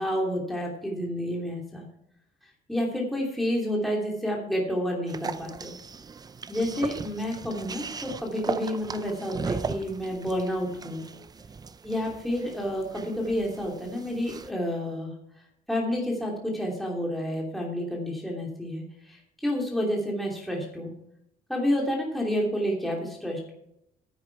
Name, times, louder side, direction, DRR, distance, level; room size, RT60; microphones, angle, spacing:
voice 1, 0.0-1.8 2.7-5.8 6.5-11.0 11.8-15.1 15.7-20.9 21.5-23.5, equal, ahead, -2 dB, 2.9 m, -29 dB
sound 1, 5.1-14.5, right 5 dB, 25° right, 0.6 m, -38 dB
10.5 x 8.6 x 4.7 m, 0.78 s
cardioid pair, 110°, 17 cm